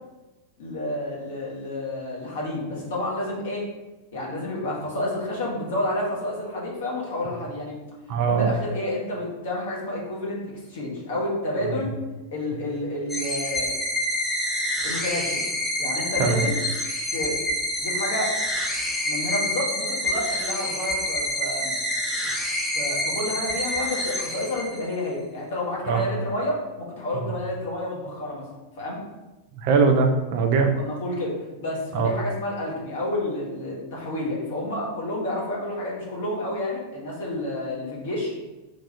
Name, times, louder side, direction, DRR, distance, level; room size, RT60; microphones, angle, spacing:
voice 1, 0.6-3.6 4.1-7.8 8.2-11.9 12.3-13.8 14.8-15.4 15.8-16.6 17.1-17.4 17.8-18.4 19.0-21.7 22.7-28.4 28.8-29.0 30.7-38.3, left 1 dB, 60° left, -4 dB, 1.1 m, -30 dB
voice 2, 8.1-8.5 16.2-16.4 25.8-26.0 29.6-30.8 31.9-32.1, right 5 dB, 45° right, 4 dB, 0.4 m, -21 dB
sound 1, 13.1-25.0, left 1 dB, ahead, 0.6 m, -27 dB
3.2 x 2.4 x 4.0 m, 1.1 s
figure-of-eight pair, 90°, 0 cm